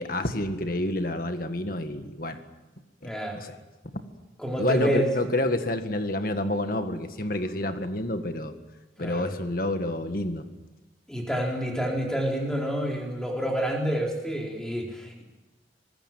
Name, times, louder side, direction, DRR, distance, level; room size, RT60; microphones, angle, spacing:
voice 1, 0.0-2.4 3.0-3.6 3.8-3.9 4.6-8.5 9.0-10.5, left 1 dB, 50° left, 8 dB, 1.8 m, -28 dB
voice 2, 3.0-3.4 4.4-5.1 9.0-9.3 11.1-15.2, equal, 5° left, 0 dB, 4.1 m, -28 dB
26.0 x 20.5 x 7.6 m, 1.1 s
head